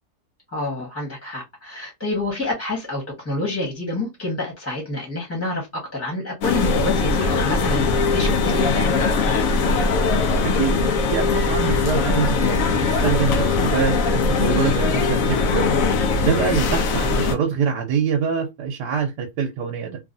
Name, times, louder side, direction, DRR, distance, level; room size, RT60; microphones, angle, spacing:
voice 1, 0.5-5.7 5.9-9.0, left 2 dB, 10° left, 1.0 m, -28 dB
sound 1, 6.4-17.3, left 4 dB, 70° left, 0.8 m, -20 dB
voice 2, 10.4-15.7 16.2-20.0, right 7 dB, 90° right, 1.3 m, -25 dB
3.1 x 2.3 x 2.5 m
omnidirectional pair, 1.7 m